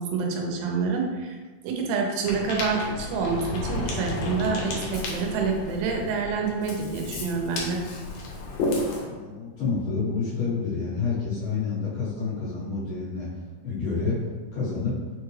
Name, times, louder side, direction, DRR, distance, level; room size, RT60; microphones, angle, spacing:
voice 1, 0.0-1.4 1.6-7.8, right 4 dB, 90° right, 1 dB, 2.7 m, -27 dB
Ocean, 2.2-9.0, left 2 dB, 85° left, 1.7 m, -32 dB
voice 2, 9.0-13.3 13.6-14.2 14.5-15.0, left 4 dB, 65° left, -10 dB, 2.5 m, -28 dB
6.1 x 2.3 x 3.2 m, 1.4 s
omnidirectional pair, 4.5 m